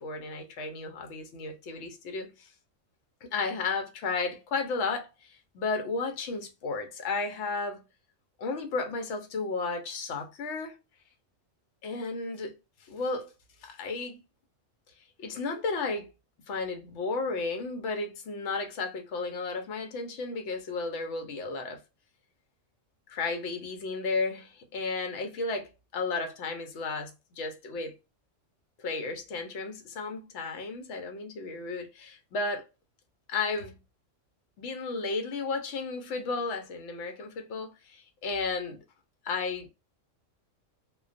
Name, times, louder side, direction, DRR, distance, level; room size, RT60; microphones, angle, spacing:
voice 1, 0.0-2.5 3.2-5.1 5.5-7.8 8.4-10.8 11.8-12.5 12.9-13.3 13.6-14.2 15.2-16.1 16.5-21.8 23.1-27.9 28.8-32.6 33.3-33.8 34.6-38.8 39.2-39.7, left 4 dB, 65° left, 1.0 m, -33 dB
2.3 x 2.2 x 2.4 m
omnidirectional pair, 1.3 m